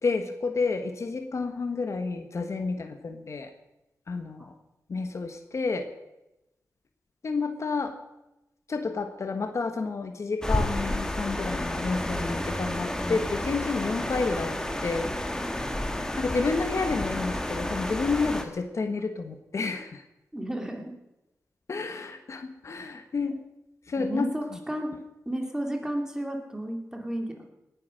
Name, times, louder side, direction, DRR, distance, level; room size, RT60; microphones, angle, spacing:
voice 1, 0.0-3.5 4.1-4.5 4.9-5.9 7.2-7.9 8.7-15.1 16.2-20.0 21.7-23.4 23.9-24.3, left 4 dB, 55° left, 7 dB, 1.3 m, -30 dB
sound 1, 10.4-18.4, left 1 dB, 10° left, 1.4 m, -31 dB
voice 2, 20.3-20.9 24.0-27.5, right 1 dB, 10° right, 3 dB, 2.6 m, -33 dB
18.5 x 9.8 x 6.4 m, 0.95 s
wide cardioid pair, 110°, 6 cm